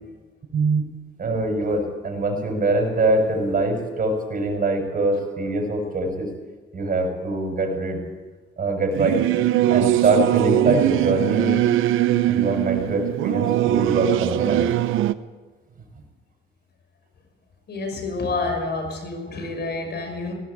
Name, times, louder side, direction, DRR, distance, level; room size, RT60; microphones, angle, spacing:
voice 1, 0.5-0.8 1.2-6.3 6.7-8.0 8.6-9.2 9.7-11.6 12.3-14.7, right 2 dB, 45° right, 3 dB, 6.7 m, -23 dB
Singing / Musical instrument, 8.9-15.1, right 13 dB, 90° right, 0.8 m, -21 dB
voice 2, 17.7-20.3, left 3 dB, 55° left, 5 dB, 6.2 m, -28 dB
18.5 x 18.0 x 8.6 m, 1.3 s
cardioid pair, 90°, 20 cm